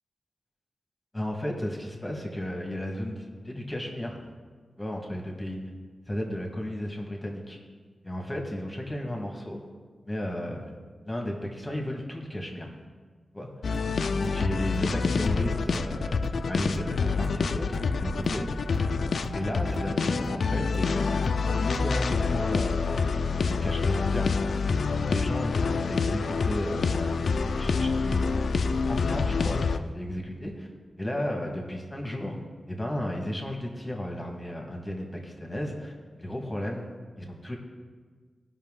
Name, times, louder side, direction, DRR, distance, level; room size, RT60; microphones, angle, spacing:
voice 1, 1.1-4.2 4.8-5.6 6.1-7.6 8.0-9.6 10.1-10.7 11.0-12.7 13.3-13.5 14.2-18.5 18.9-19.0 19.3-24.5 25.0-27.3 27.6-28.3 28.8-30.7 31.0-32.4 32.7-35.9 36.2-36.8 37.2-37.6, left 1 dB, 10° left, 0 dB, 1.6 m, -34 dB
sound 1, 13.6-29.8, left 4 dB, 70° left, 0.4 m, -27 dB
sound 2, 13.7-22.2, right 3 dB, 40° right, 0.6 m, -42 dB
17.0 x 5.7 x 3.7 m, 1.5 s
wide cardioid pair, 110°, 0 cm